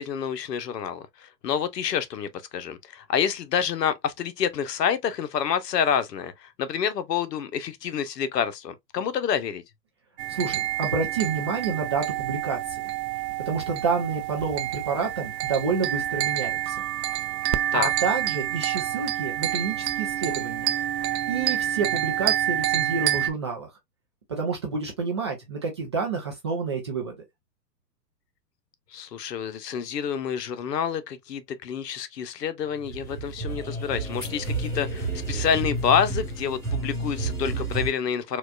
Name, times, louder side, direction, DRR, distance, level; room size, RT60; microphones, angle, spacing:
voice 1, 0.0-9.6 17.7-17.9 28.9-38.4, left 8 dB, 70° left, 0.8 m, -28 dB
sound 1, 10.2-23.3, right 12 dB, 75° right, 0.5 m, -28 dB
voice 2, 10.3-12.8 13.5-16.8 17.7-20.7 21.3-23.7 24.3-27.2, right 5 dB, 20° right, 0.3 m, -29 dB
sound 2, 32.7-37.9, right 2 dB, 5° left, 1.4 m, -30 dB
4.4 x 2.4 x 2.3 m
hypercardioid pair, 125°, 49 cm